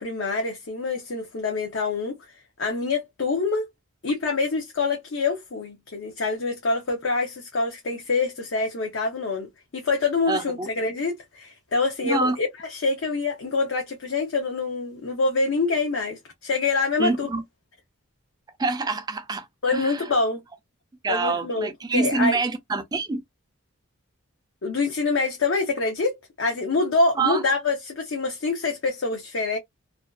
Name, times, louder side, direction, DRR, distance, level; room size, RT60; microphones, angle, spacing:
voice 1, 0.0-2.2 2.6-3.7 4.0-17.3 19.6-20.4 21.1-22.4 24.6-29.6, left 3 dB, 60° left, 0.6 m, -26 dB
voice 2, 10.3-10.7 12.0-12.4 17.0-17.4 18.6-20.1 21.0-23.2 27.2-27.4, right 3 dB, 20° right, 0.3 m, -26 dB
2.5 x 2.2 x 2.2 m
head